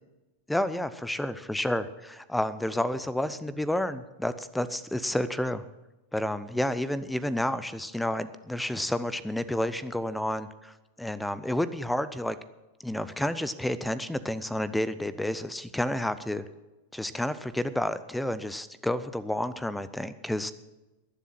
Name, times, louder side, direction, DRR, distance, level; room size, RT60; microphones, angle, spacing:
voice 1, 0.5-5.6 6.1-12.4 12.8-16.4 16.9-20.5, left 1 dB, 5° left, 16 dB, 0.8 m, -30 dB
21.0 x 7.4 x 5.9 m, 1.1 s
figure-of-eight pair, 90°, 0 cm